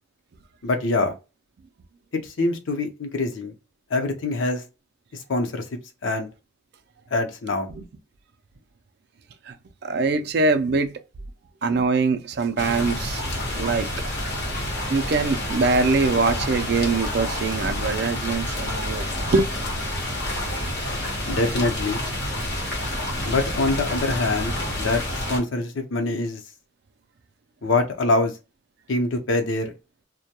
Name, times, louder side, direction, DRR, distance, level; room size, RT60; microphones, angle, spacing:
voice 1, 0.6-1.1 2.1-3.5 3.9-4.6 5.3-5.6 6.0-6.3 7.1-7.7 21.3-22.0 23.2-26.4 27.6-28.3 28.9-29.7, left 2 dB, 80° left, 0.6 m, -24 dB
voice 2, 9.8-11.0 11.6-13.2 13.5-13.9 14.9-19.5, right 4 dB, 55° right, 0.4 m, -23 dB
sound 1, 12.6-25.4, left 1 dB, 55° left, 0.9 m, -28 dB
2.2 x 2.1 x 2.8 m
head